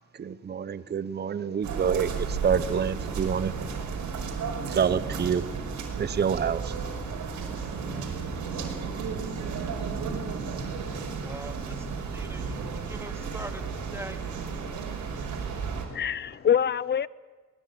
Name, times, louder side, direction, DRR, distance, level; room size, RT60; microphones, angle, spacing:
voice 1, 0.1-3.5 4.7-5.4 6.0-6.7, right 7 dB, 35° right, 0.8 m, -27 dB
sound 1, 1.6-15.9, right 5 dB, 75° right, 5.3 m, -33 dB
voice 2, 6.8-8.1 11.2-13.6 13.9-14.2, right 1 dB, 10° right, 2.3 m, -44 dB
voice 3, 15.6-17.1, left 8 dB, 35° left, 0.6 m, -26 dB
21.0 x 19.0 x 8.6 m
cardioid pair, 90°, 30 cm